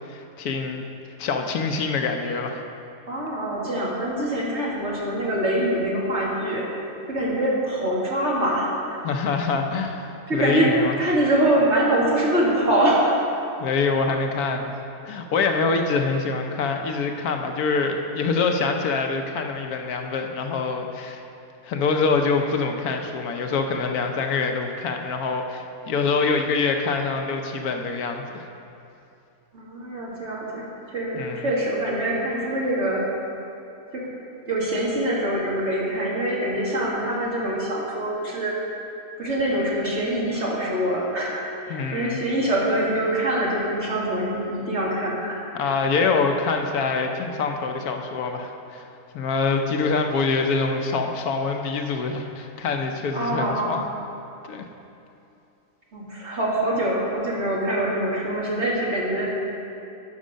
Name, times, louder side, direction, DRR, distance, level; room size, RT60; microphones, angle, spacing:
voice 1, 0.1-0.8 1.2-2.6 9.0-11.0 13.6-14.7 15.0-21.2 21.6-28.5 31.1-31.5 41.7-42.2 45.5-48.9 49.1-53.8 54.5-54.7, left 4 dB, 75° left, 4 dB, 1.2 m, -25 dB
voice 2, 3.1-9.0 10.3-13.3 29.5-33.0 33.9-34.1 34.5-38.5 39.2-45.4 53.1-53.8 55.9-59.5, right 1 dB, 45° right, -5 dB, 2.1 m, -24 dB
11.0 x 6.3 x 5.2 m, 2.7 s
omnidirectional pair, 1.6 m